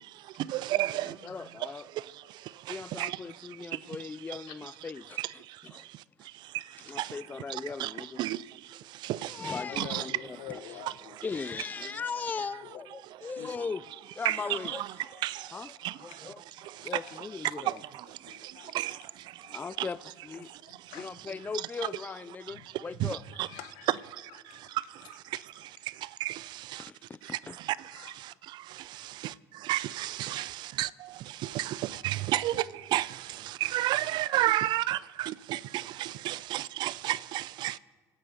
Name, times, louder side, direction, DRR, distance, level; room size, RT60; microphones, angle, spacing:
voice 1, 0.0-1.3 1.6-4.0 4.3-4.4 5.2-7.2 7.5-10.0 13.3-13.4 14.2-14.9 15.2-16.3 16.6-19.9 20.4-20.9 22.7-23.5 24.2-26.9 27.2-37.8, right 15 dB, 60° right, 0.5 m, -34 dB
voice 2, 0.7-1.9 2.7-5.9 6.8-8.2 9.3-10.1 10.5-10.8 11.2-15.2 15.5-15.7 16.0-16.4 16.8-17.8 19.5-20.5 20.9-23.2 26.8-27.6, left 5 dB, 20° left, 0.3 m, -39 dB
voice 3, 9.6-12.3 12.6-13.7 15.8-17.2 17.5-17.7 18.2-19.0 19.4-19.8 20.4-21.1 22.5-22.8 23.4-24.0 24.4-24.8 25.3-25.4 27.9-28.2 28.9-29.2 30.3-30.6 32.0-32.1 33.5-33.6 34.2-34.3, left 11 dB, 70° left, 1.4 m, -49 dB
24.5 x 9.3 x 5.4 m
hypercardioid pair, 75°, 9 cm